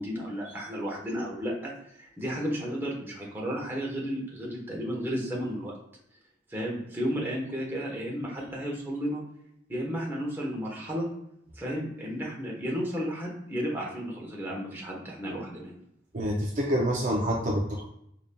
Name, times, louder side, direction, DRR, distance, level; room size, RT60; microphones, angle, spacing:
voice 1, 0.0-5.7 6.5-9.2 9.7-11.1 11.5-15.8, equal, 10° right, -3 dB, 1.0 m, -33 dB
voice 2, 16.1-17.8, equal, 45° right, -2 dB, 0.5 m, -27 dB
5.0 x 2.7 x 2.2 m, 0.77 s
head